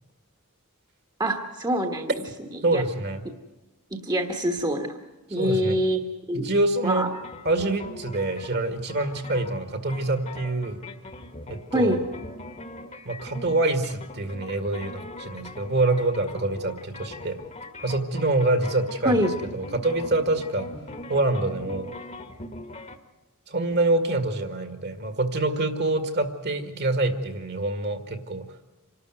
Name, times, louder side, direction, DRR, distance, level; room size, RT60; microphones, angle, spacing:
voice 1, 1.2-2.2 2.7-2.8 3.9-5.0 5.3-6.5 6.8-7.1 11.7-12.0 19.0-19.4, equal, 20° right, 5 dB, 1.3 m, -25 dB
voice 2, 2.6-3.3 5.4-5.8 6.3-7.1 7.5-10.8 11.5-12.0 13.1-17.4 17.8-20.7 21.1-21.9 23.5-28.4, right 2 dB, 50° right, 9 dB, 1.9 m, -26 dB
sound 1, 7.1-23.0, left 2 dB, 30° left, 1.4 m, -41 dB
27.0 x 12.5 x 9.1 m, 1.1 s
head